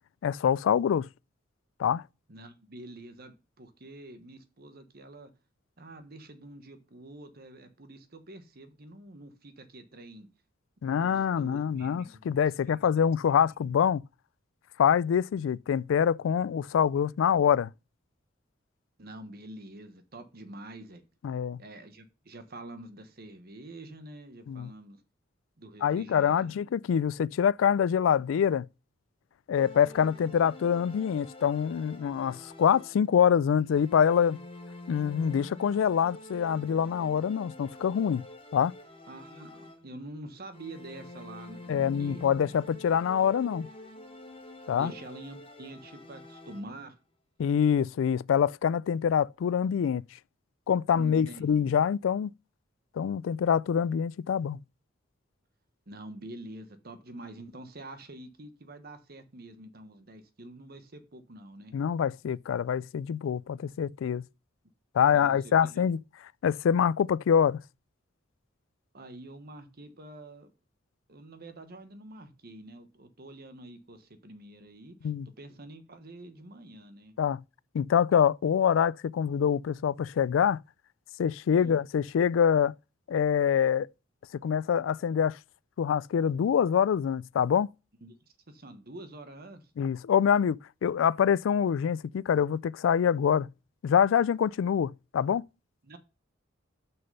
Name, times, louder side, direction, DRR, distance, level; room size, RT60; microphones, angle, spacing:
voice 1, 0.2-1.1 1.8-2.0 10.8-14.0 14.8-17.7 21.2-21.6 24.5-24.7 25.8-28.7 29.5-34.4 34.9-38.2 38.5-38.7 41.7-43.7 44.7-44.9 47.4-50.0 50.7-52.3 53.0-54.6 61.7-64.2 64.9-66.0 66.4-67.6 75.0-75.3 77.2-77.4 77.7-80.6 81.2-82.7 83.1-83.9 84.4-85.4 85.8-87.7 89.8-93.5 93.8-95.4, left 8 dB, 90° left, 0.3 m, -25 dB
voice 2, 2.3-5.3 5.8-10.3 10.9-12.4 12.7-13.4 19.0-21.0 21.6-25.0 25.6-26.6 39.1-39.5 39.8-42.3 44.8-47.0 50.9-51.6 55.9-61.7 65.1-65.8 68.9-70.5 71.1-75.1 75.4-77.1 81.5-81.8 88.0-88.1 88.5-89.7 95.8-96.0, right 1 dB, 55° right, 1.2 m, -47 dB
sound 1, 29.5-33.3 33.7-40.1 40.5-47.0, left 1 dB, 30° left, 1.2 m, -47 dB
6.4 x 6.1 x 5.4 m
head